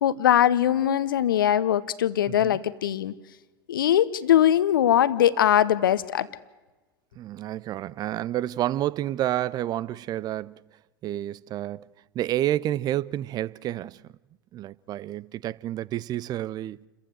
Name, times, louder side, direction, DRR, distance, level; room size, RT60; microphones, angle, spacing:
voice 1, 0.0-3.1 3.7-6.3, left 11 dB, 70° left, 1.0 m, -21 dB
voice 2, 2.3-2.6 7.2-10.6 11.0-11.9 12.1-14.1 14.5-16.8, right 13 dB, 35° right, 0.6 m, -29 dB
29.0 x 15.0 x 7.6 m
figure-of-eight pair, 85°, 12 cm